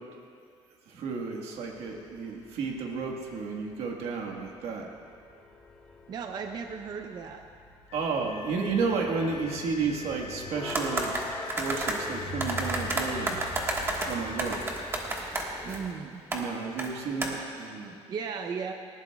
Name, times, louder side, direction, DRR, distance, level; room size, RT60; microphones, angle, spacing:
voice 1, 0.9-4.9 7.9-13.5 14.1-14.6 16.3-18.0, right 4 dB, 70° right, 0 dB, 1.6 m, -32 dB
sound 1, 1.6-15.9, left 1 dB, 10° left, 1.5 m, -43 dB
voice 2, 6.1-7.4 15.6-16.2 18.1-18.7, right 6 dB, 40° right, 5 dB, 0.7 m, -35 dB
Wind instrument woodwind instrument, 7.9-14.9, left 6 dB, 80° left, 1.1 m, -45 dB
sound 2, 10.7-12.0 12.4-15.8 16.3-16.4 16.8-16.9 17.2-17.3, right 2 dB, 20° right, 1.6 m, -31 dB
19.5 x 19.5 x 2.4 m, 2.3 s
cardioid pair, 160°, 11 cm